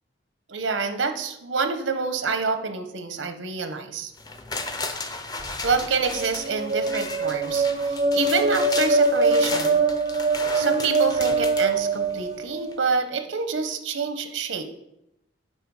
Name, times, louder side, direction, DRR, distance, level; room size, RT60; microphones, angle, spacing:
voice 1, 0.5-4.1 5.6-9.9 10.5-14.6, right 5 dB, 85° right, 8 dB, 0.9 m, -27 dB
sound 1, 4.2-12.3 12.7-12.8, left 3 dB, 20° left, 0.5 m, -35 dB
sound 2, 6.0-12.9, right 3 dB, 35° right, 0.5 m, -23 dB
8.9 x 4.1 x 4.8 m, 0.83 s
head